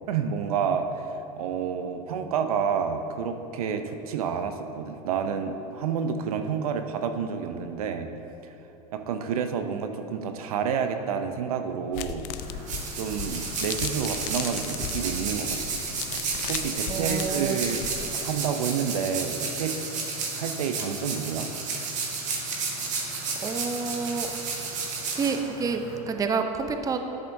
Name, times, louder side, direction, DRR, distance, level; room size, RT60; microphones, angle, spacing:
voice 1, 0.1-8.1 8.9-12.3 13.0-15.9 16.5-17.9 18.1-19.8 20.4-21.5, right 7 dB, 80° right, 7 dB, 0.6 m, -29 dB
sound 1, 11.9-18.2, left 9 dB, 50° left, 0.5 m, -37 dB
sound 2, 12.4-26.0, right 4 dB, 40° right, 1.6 m, -32 dB
voice 2, 16.9-17.6 23.4-24.3 25.1-27.1, right 5 dB, 20° right, 6 dB, 0.6 m, -29 dB
11.0 x 7.7 x 2.7 m, 3.0 s
hypercardioid pair, 100°, 19 cm